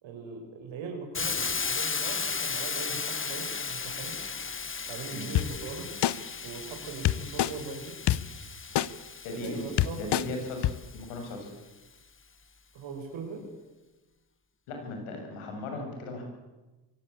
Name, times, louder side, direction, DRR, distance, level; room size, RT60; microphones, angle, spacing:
voice 1, 0.0-4.2 4.9-5.9 6.4-7.9 9.3-10.2 12.7-13.4, right 4 dB, 65° right, 2 dB, 5.2 m, -40 dB
Hiss, 1.1-11.0, left 5 dB, 25° left, 1.4 m, -35 dB
sound 1, 5.3-5.5 6.0-6.1 7.0-7.5 8.1-8.2 8.7-8.9 9.4-9.5 9.8-10.2 10.6-10.7, left 13 dB, 55° left, 1.0 m, -24 dB
voice 2, 9.2-9.7 10.0-11.5 14.7-16.2, left 2 dB, 80° left, 3 dB, 7.1 m, -37 dB
23.5 x 16.5 x 8.6 m, 1.1 s
hypercardioid pair, 60°, 49 cm